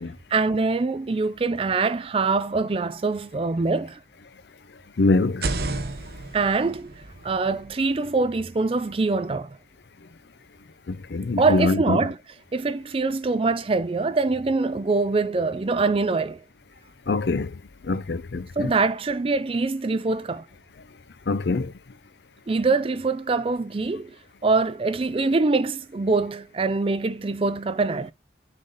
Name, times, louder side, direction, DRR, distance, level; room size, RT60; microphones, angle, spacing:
voice 1, 0.3-4.0 6.3-6.9 7.2-9.6 11.4-12.2 12.5-16.4 18.6-20.5 22.5-24.2 24.4-28.1, right 3 dB, 30° right, 0.4 m, -24 dB
voice 2, 5.0-5.5 10.9-12.0 17.1-17.6 17.8-18.7 21.3-21.7, left 3 dB, 70° left, 0.5 m, -24 dB
sound 1, 5.3-9.1, right 2 dB, 60° right, 0.9 m, -34 dB
6.6 x 3.7 x 4.1 m
head